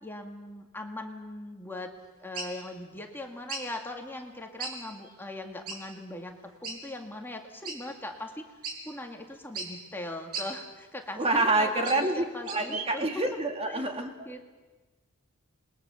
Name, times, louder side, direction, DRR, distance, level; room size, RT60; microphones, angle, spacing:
voice 1, 0.0-1.9 2.2-8.4 8.9-13.2 13.7-13.9 14.2-14.4, left 1 dB, 10° left, 2 dB, 2.0 m, -40 dB
sound 1, 2.3-2.6 3.5-3.7 4.6-4.8 5.1-5.2 5.7-5.8 6.6-6.8 7.6-7.8 8.3-8.4 8.6-8.8 9.5-9.7 10.3-10.5 11.4-12.1 12.4-12.8, right 4 dB, 85° right, 5.1 m, -36 dB
voice 2, 11.2-14.1, right 2 dB, 25° right, 4 dB, 2.2 m, -27 dB
28.0 x 21.5 x 7.0 m, 1.3 s
head